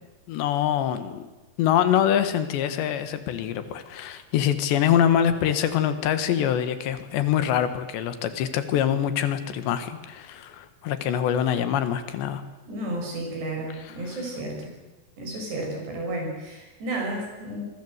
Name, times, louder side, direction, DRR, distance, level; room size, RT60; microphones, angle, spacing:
voice 1, 0.3-1.3 1.6-12.4 13.9-14.0, left 10 dB, 85° left, 11 dB, 3.8 m, -24 dB
voice 2, 12.7-14.7 15.2-17.6, right 1 dB, 75° right, 1 dB, 9.3 m, -32 dB
25.5 x 22.5 x 8.1 m, 1.1 s
omnidirectional pair, 4.9 m